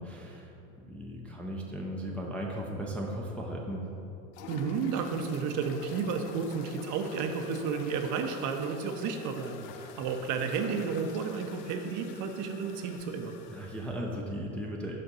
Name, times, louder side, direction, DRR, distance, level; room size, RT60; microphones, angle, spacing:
voice 1, 0.0-3.8 13.5-15.0, equal, 5° left, -2 dB, 0.4 m, -37 dB
sound 1, 4.3-14.0, left 7 dB, 65° left, 0.6 m, -48 dB
voice 2, 4.5-13.4, right 5 dB, 45° right, 6 dB, 0.6 m, -32 dB
5.4 x 5.2 x 3.9 m, 2.7 s
hypercardioid pair, 95°, 43 cm